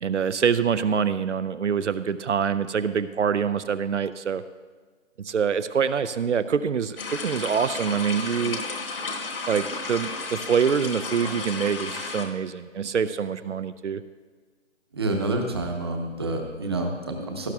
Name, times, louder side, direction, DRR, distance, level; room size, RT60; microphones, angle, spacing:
voice 1, 0.0-4.4 5.2-8.6 9.5-14.0, right 7 dB, 70° right, 13 dB, 0.6 m, -25 dB
sound 1, 7.0-12.2, left 3 dB, 45° left, 1.5 m, -33 dB
voice 2, 14.9-17.5, right 2 dB, 20° right, 3 dB, 0.9 m, -28 dB
17.5 x 11.0 x 2.3 m, 1.4 s
figure-of-eight pair, 165°, 37 cm